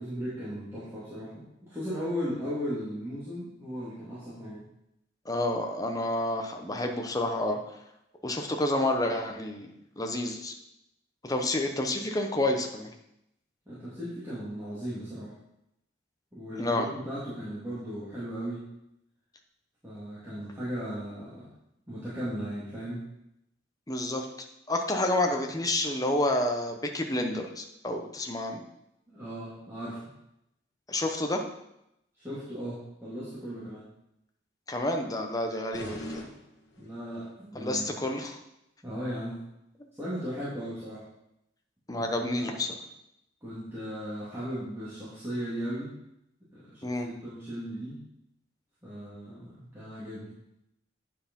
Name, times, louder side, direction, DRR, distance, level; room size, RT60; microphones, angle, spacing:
voice 1, 0.0-4.6 13.7-15.3 16.3-18.6 19.8-21.5 21.9-23.0 29.1-30.0 32.2-33.8 36.8-38.0 38.8-39.4 39.9-41.0 42.0-42.6 43.4-45.9 46.5-48.0 48.8-50.3, equal, 15° right, -11 dB, 2.4 m, -37 dB
voice 2, 5.3-7.6 8.2-9.7 10.0-10.5 11.2-12.9 16.6-16.9 23.9-24.3 24.7-28.6 30.9-31.4 34.7-36.2 37.5-38.4 41.9-42.7 46.8-47.1, left 1 dB, 20° left, 3 dB, 0.9 m, -29 dB
sound 1, 35.7-37.2, equal, 65° left, 1.8 m, -42 dB
9.4 x 4.8 x 5.3 m, 0.82 s
head